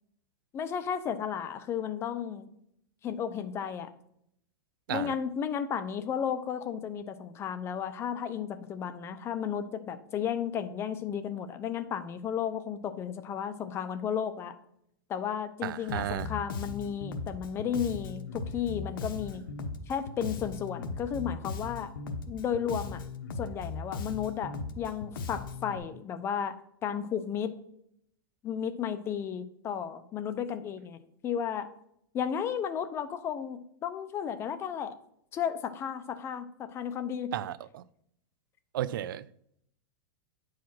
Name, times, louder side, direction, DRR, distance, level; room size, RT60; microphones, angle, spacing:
voice 1, 0.5-2.5 3.0-3.9 4.9-14.5 15.1-19.4 19.9-21.9 22.3-23.0 23.4-26.5 26.8-27.5 28.4-31.7 32.1-34.9 35.3-37.3, left 8 dB, 20° left, 0.7 m, -33 dB
voice 2, 15.6-16.3 37.3-37.8 38.7-39.3, right 12 dB, 75° right, 0.5 m, -33 dB
Bass guitar, 15.9-25.8, left 4 dB, 75° left, 1.1 m, -38 dB
9.4 x 4.9 x 6.1 m
supercardioid pair, 150°, 11 cm